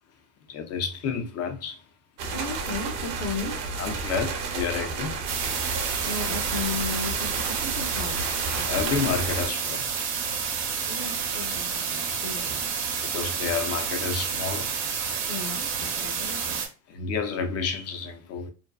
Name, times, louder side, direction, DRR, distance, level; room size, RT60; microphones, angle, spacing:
voice 1, 0.5-1.8 3.8-5.2 8.7-9.9 13.0-14.7 16.9-18.5, left 5 dB, 35° left, 0.5 m, -30 dB
sound 1, 2.2-9.5, right 4 dB, 60° right, 0.8 m, -32 dB
voice 2, 2.3-3.6 6.0-8.2 8.6-8.7 10.8-12.7 15.3-16.6, left 3 dB, 50° left, 0.8 m, -35 dB
sound 2, 5.3-16.7, right 6 dB, 85° right, 0.8 m, -29 dB
2.7 x 2.2 x 2.3 m
hypercardioid pair, 95°, 47 cm